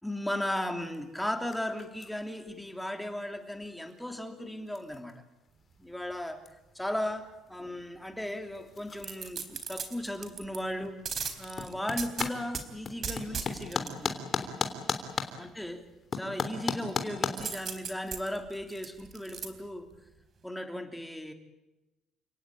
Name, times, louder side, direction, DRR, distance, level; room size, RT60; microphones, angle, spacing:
voice 1, 0.0-5.2 5.8-6.5 6.7-11.0 11.4-14.2 15.4-15.8 16.1-19.9 20.4-21.3, left 1 dB, 5° left, 5 dB, 3.2 m, -36 dB
sound 1, 0.8-17.3, left 5 dB, 35° left, 3.4 m, -39 dB
sound 2, 9.0-10.6 11.1-12.6 13.0-13.9 17.4-19.5 19.9-20.0, right 6 dB, 45° right, 3.8 m, -37 dB
30.0 x 18.0 x 9.3 m, 1.0 s
cardioid pair, 125°, 0 cm